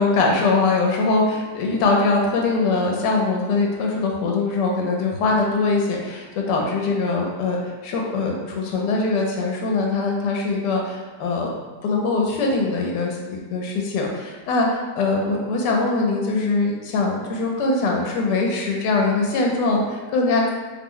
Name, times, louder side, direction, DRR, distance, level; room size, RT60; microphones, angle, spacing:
voice 1, 0.0-11.5 11.8-20.5, left 3 dB, 80° left, 0 dB, 1.2 m, -22 dB
3.0 x 2.0 x 3.6 m, 1.3 s
omnidirectional pair, 1.9 m